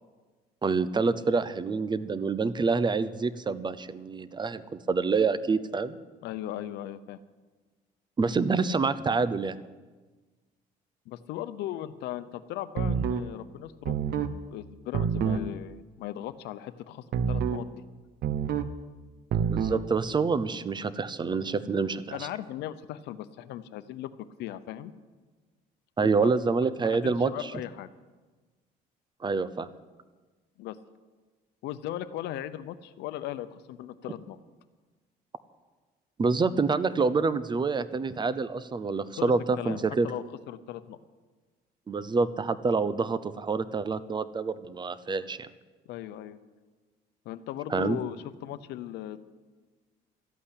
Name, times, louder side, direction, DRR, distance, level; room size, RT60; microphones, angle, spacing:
voice 1, 0.6-6.0 8.2-9.6 19.5-22.3 26.0-27.5 29.2-29.7 36.2-40.1 41.9-45.4 47.7-48.0, right 4 dB, 25° right, 15 dB, 0.7 m, -27 dB
voice 2, 6.2-7.2 11.1-17.8 22.1-24.1 24.4-24.9 26.0-26.3 26.8-27.9 30.6-30.8 31.6-34.4 39.1-41.0 45.9-46.4 47.2-49.2, left 12 dB, 85° left, 13 dB, 0.8 m, -38 dB
sound 1, 12.8-13.3 13.8-14.3 14.9-15.5 17.1-17.7 18.2-18.7 19.3-19.8, right 7 dB, 70° right, 1.0 m, -27 dB
13.0 x 8.6 x 10.0 m, 1.3 s
cardioid pair, 110°, 17 cm